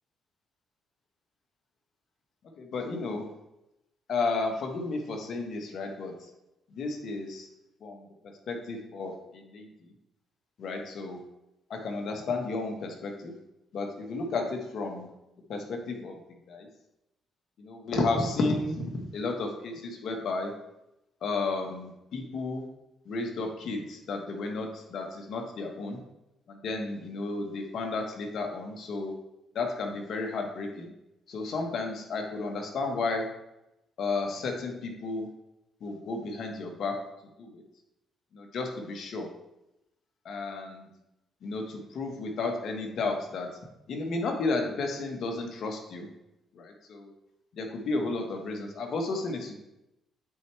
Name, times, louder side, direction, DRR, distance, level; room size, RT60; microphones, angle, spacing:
voice 1, 2.6-3.3 4.1-6.1 6.7-7.5 7.8-8.1 8.5-9.7 10.6-11.2 11.7-13.3 13.7-15.1 15.5-16.2 16.5-16.7 17.6-18.8 19.1-20.5 21.2-22.6 23.1-26.0 26.5-29.1 29.5-30.9 31.3-33.3 34.0-35.3 35.8-37.0 37.4-37.6 38.3-39.3 40.2-40.9 41.4-43.5 43.9-46.1 46.5-47.1 47.5-49.6, left 3 dB, 65° left, 3 dB, 1.3 m, -32 dB
9.1 x 4.6 x 3.3 m, 0.89 s
cardioid pair, 90°, 0 cm